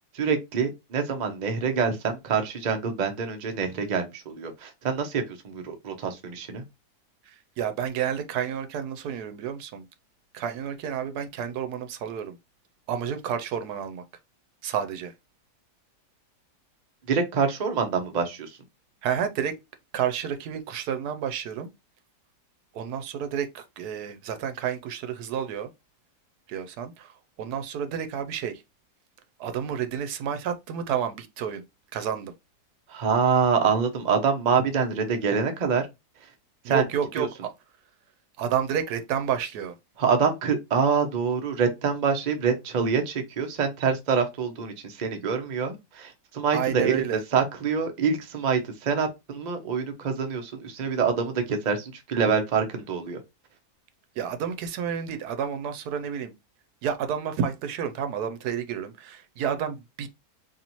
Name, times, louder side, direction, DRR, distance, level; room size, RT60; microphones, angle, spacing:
voice 1, 0.1-6.6 17.1-18.6 32.9-35.9 36.7-36.8 37.2-37.3 40.0-47.0 47.3-53.2, right 6 dB, 55° right, 0.5 m, -26 dB
voice 2, 7.3-9.8 10.3-12.4 12.9-14.0 14.6-15.1 19.0-19.5 19.9-21.7 22.7-25.7 26.5-27.1 27.4-28.6 29.4-31.6 31.9-32.3 36.6-37.5 38.4-39.7 46.5-47.2 54.2-56.3 56.8-60.1, right 8 dB, 75° right, 1.1 m, -30 dB
4.0 x 3.0 x 2.9 m
omnidirectional pair, 1.8 m